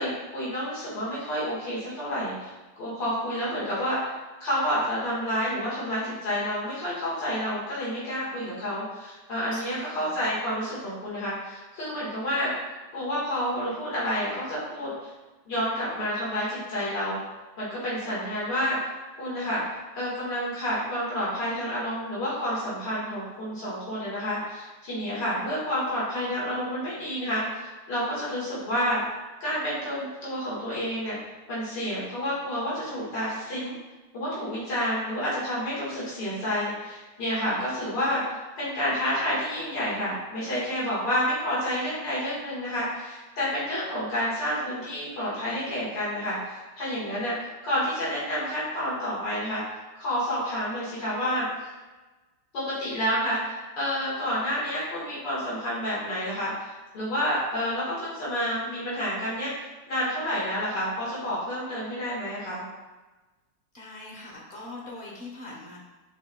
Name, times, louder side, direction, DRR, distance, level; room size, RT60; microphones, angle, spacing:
voice 1, 0.0-2.5 2.8-4.2 4.4-12.5 12.9-15.1 15.5-17.2 17.6-18.9 19.2-19.6 19.9-29.0 29.4-31.2 31.5-33.7 34.1-49.6 50.0-51.5 52.5-59.5 59.9-62.6, equal, 75° left, -8 dB, 2.3 m, -29 dB
voice 2, 9.5-10.3 63.7-65.8, left 2 dB, 35° left, -3 dB, 0.9 m, -42 dB
6.6 x 3.4 x 2.2 m, 1.2 s
omnidirectional pair, 2.0 m